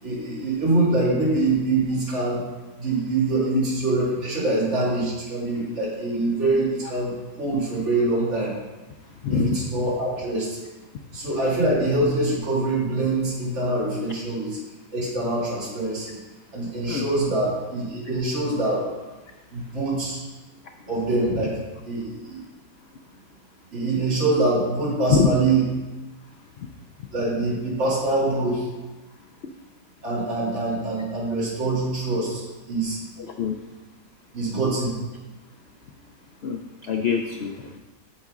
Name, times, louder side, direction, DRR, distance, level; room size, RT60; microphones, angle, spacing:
voice 1, 0.0-2.4 2.8-8.5 9.3-10.6 11.1-14.6 14.9-16.2 16.5-18.8 19.5-20.2 20.9-21.5 21.8-22.4 23.7-25.7 27.1-28.7 30.0-32.4 32.7-33.0 34.3-34.9, right 2 dB, 45° right, -7 dB, 2.6 m, -24 dB
voice 2, 9.2-9.6 16.9-17.1 25.1-25.3 33.2-33.6 36.4-37.8, left 5 dB, 85° left, 4 dB, 0.5 m, -24 dB
8.4 x 7.2 x 3.7 m, 1.2 s
omnidirectional pair, 1.7 m